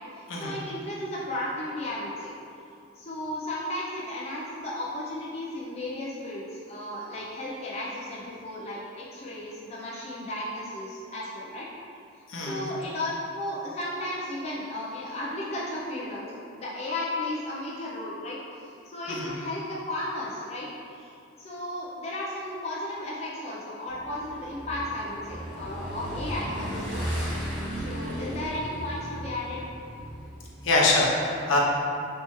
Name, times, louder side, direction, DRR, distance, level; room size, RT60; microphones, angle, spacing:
voice 1, 0.1-2.3 3.0-11.7 12.4-13.1 13.3-27.3 27.8-29.6, left 1 dB, 30° left, -6 dB, 0.4 m, -34 dB
voice 2, 12.3-12.7 19.1-19.3 30.6-31.6, left 2 dB, 75° left, -3 dB, 0.7 m, -24 dB
Motorcycle / Engine, 23.9-30.9, equal, 10° right, 1.1 m, -35 dB
4.3 x 3.4 x 3.0 m, 2.5 s
head